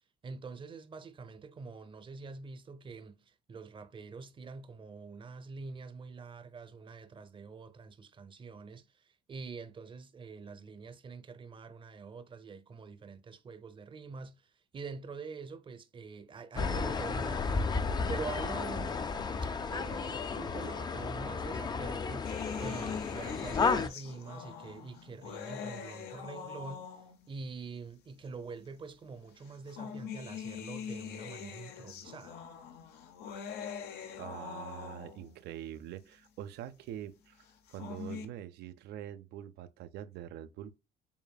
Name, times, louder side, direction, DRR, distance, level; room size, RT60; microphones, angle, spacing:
voice 1, 0.2-19.0 19.7-26.9 27.3-32.5, right 4 dB, 30° right, 0.6 m, -45 dB
sound 1, 16.6-23.9, left 4 dB, 25° left, 0.4 m, -33 dB
sound 2, 22.2-27.3 28.3-28.4 29.4-35.3 37.5-38.2, left 7 dB, 80° left, 0.8 m, -43 dB
voice 2, 34.2-40.7, right 11 dB, 75° right, 0.5 m, -44 dB
7.0 x 2.5 x 2.2 m
cardioid pair, 110°, 17 cm